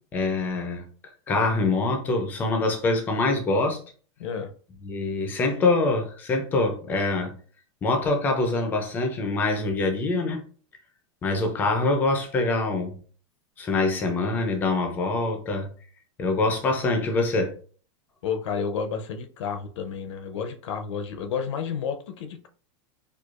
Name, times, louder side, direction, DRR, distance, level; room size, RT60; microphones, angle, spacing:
voice 1, 0.1-0.9 1.3-3.8 4.8-7.3 7.8-10.5 11.2-13.0 13.6-15.7 16.2-17.5, left 2 dB, 10° left, 0.4 m, -24 dB
voice 2, 4.2-4.5 18.2-22.5, left 6 dB, 65° left, 0.6 m, -31 dB
4.6 x 2.3 x 2.4 m
supercardioid pair, 175°, 16 cm